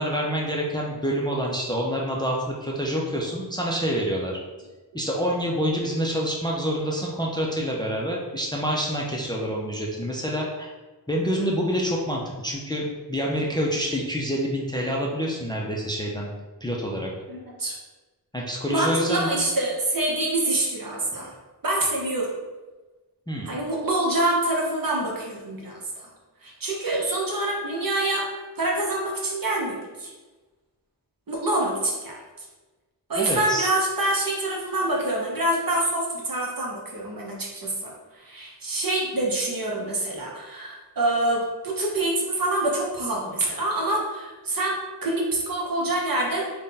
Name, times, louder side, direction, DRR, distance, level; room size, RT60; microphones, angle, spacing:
voice 1, 0.0-4.4 4.9-10.7 11.1-16.3 16.6-17.1 18.3-19.3 21.1-21.3 23.3-23.5 33.2-33.7, equal, 10° left, -2 dB, 0.5 m, -27 dB
voice 2, 17.3-17.7 18.5-21.3 21.6-22.3 23.4-26.1 26.4-28.3 28.6-30.1 31.3-32.2 33.1-46.5, right 1 dB, 55° right, -2 dB, 0.9 m, -26 dB
3.6 x 2.2 x 4.0 m, 1.2 s
wide cardioid pair, 85°, 41 cm